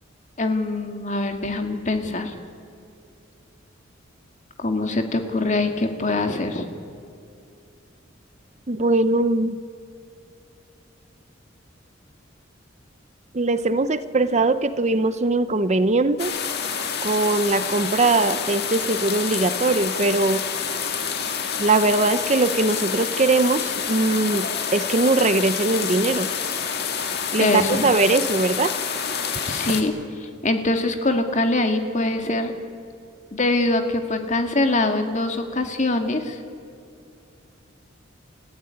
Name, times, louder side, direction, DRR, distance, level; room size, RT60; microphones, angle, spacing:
voice 1, 0.4-2.3 4.6-6.6 27.4-27.8 29.4-29.9 30.4-32.5 33.3-36.4, left 2 dB, 40° left, 5 dB, 2.1 m, -23 dB
voice 2, 8.7-9.6 13.3-16.3 17.0-20.4 21.6-24.5 24.7-26.3 27.3-28.7, right 2 dB, 35° right, 13 dB, 0.7 m, -21 dB
sound 1, 16.2-29.8, left 6 dB, 55° left, 2.1 m, -28 dB
28.5 x 15.0 x 9.9 m, 2.6 s
head